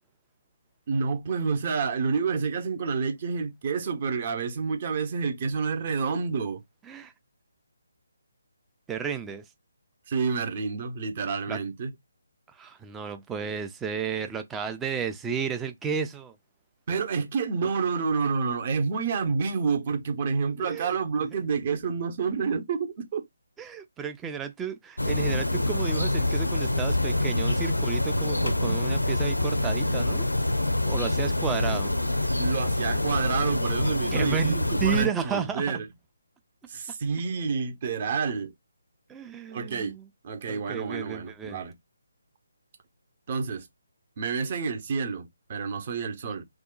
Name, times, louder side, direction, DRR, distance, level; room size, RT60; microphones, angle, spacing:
voice 1, 0.9-6.6 10.1-11.9 16.9-23.2 32.4-35.9 36.7-38.5 39.5-39.9 40.2-41.8 43.3-43.7 44.2-46.4, right 5 dB, 35° right, 0.8 m, -29 dB
voice 2, 8.9-9.4 11.5-11.6 12.6-16.3 20.6-21.0 23.6-30.2 30.8-31.9 34.1-35.8 39.1-40.1 40.5-41.6, right 7 dB, 10° right, 0.4 m, -32 dB
sound 1, 25.0-35.1, left 2 dB, 80° left, 0.6 m, -26 dB
2.8 x 2.1 x 3.7 m
figure-of-eight pair, 145°, 0 cm